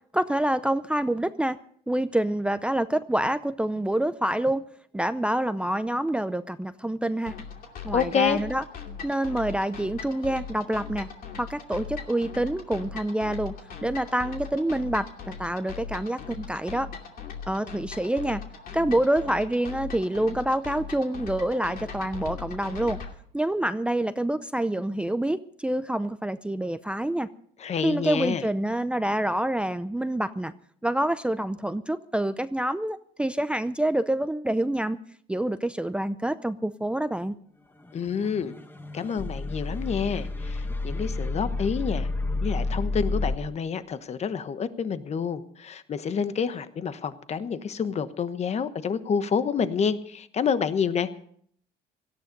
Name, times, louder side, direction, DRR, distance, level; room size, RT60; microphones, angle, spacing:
voice 1, 0.1-1.6 1.9-4.6 4.9-7.3 7.8-8.6 9.0-11.1 11.4-13.6 13.8-15.1 15.4-16.9 17.5-18.4 18.7-23.0 23.3-27.3 27.8-30.5 30.8-35.0 35.3-37.4, right 1 dB, 5° right, 13 dB, 0.5 m, -27 dB
sound 1, 7.3-23.1, left 6 dB, 60° left, 2.6 m, -40 dB
voice 2, 7.9-8.4 27.6-28.5 37.9-38.5 38.9-42.1 42.4-51.1, left 6 dB, 40° left, 12 dB, 1.1 m, -28 dB
sound 2, 38.1-43.4, left 2 dB, 10° left, 1.2 m, -30 dB
17.5 x 13.5 x 5.3 m, 0.62 s
cardioid pair, 110°, 17 cm